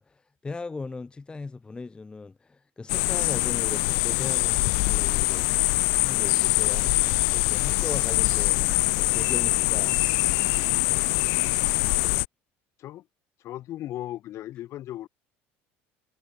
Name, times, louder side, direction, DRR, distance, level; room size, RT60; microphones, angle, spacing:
voice 1, 0.0-5.6 5.9-7.0 7.3-10.0, left 3 dB, 15° left, 0.7 m, -38 dB
sound 1, 2.9-12.3, left 38 dB, 75° left, 0.4 m, -24 dB
voice 2, 10.4-10.9 12.8-13.0 13.4-15.1, left 13 dB, 55° left, 2.1 m, -37 dB
supercardioid pair, 100°, 6 cm